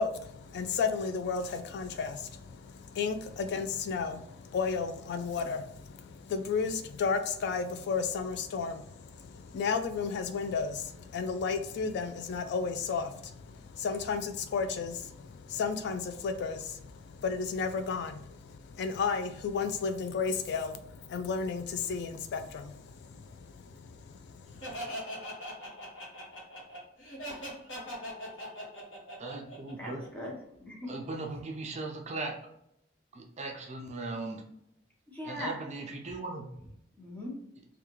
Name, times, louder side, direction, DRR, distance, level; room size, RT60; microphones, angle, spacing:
voice 1, 0.0-24.8, left 5 dB, 60° left, 8 dB, 0.3 m, -33 dB
Laughter, 24.6-30.3, equal, 80° left, 1.3 m, -41 dB
voice 2, 29.2-30.0 30.9-32.4 33.1-34.4 35.2-36.5, right 2 dB, 35° right, 2 dB, 0.5 m, -38 dB
voice 3, 29.8-30.9 35.1-35.6 37.0-37.4, equal, 10° left, -3 dB, 1.0 m, -40 dB
3.5 x 2.3 x 3.0 m, 0.78 s
head